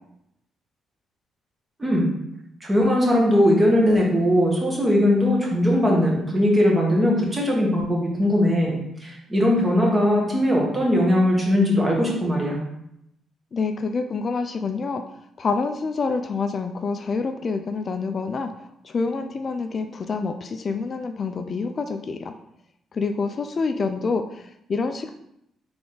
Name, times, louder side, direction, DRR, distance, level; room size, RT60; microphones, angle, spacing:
voice 1, 2.6-8.7 9.0-12.6, left 1 dB, 20° right, -2 dB, 1.4 m, -20 dB
voice 2, 13.5-15.0 15.4-22.3 22.9-25.1, left 4 dB, 45° left, 7 dB, 0.3 m, -27 dB
3.8 x 3.4 x 3.8 m, 0.79 s
cardioid pair, 90°, 0 cm